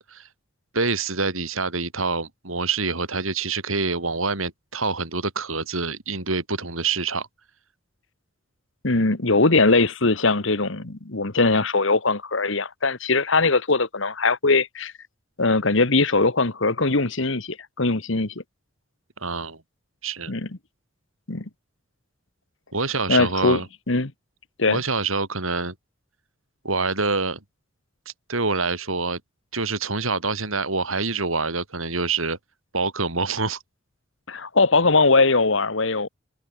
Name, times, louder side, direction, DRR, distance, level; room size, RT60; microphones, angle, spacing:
voice 1, 0.7-7.3 19.2-19.6 20.0-20.3 22.7-23.7 24.7-25.8 26.6-27.4 28.1-29.2 29.5-32.4 32.7-33.6, right 4 dB, 85° right, 5.2 m, -26 dB
voice 2, 8.8-14.9 15.4-18.4 20.3-20.5 21.3-21.4 23.1-23.6 23.9-24.1 24.6-24.8 34.3-36.1, left 3 dB, 70° left, 1.6 m, -21 dB
head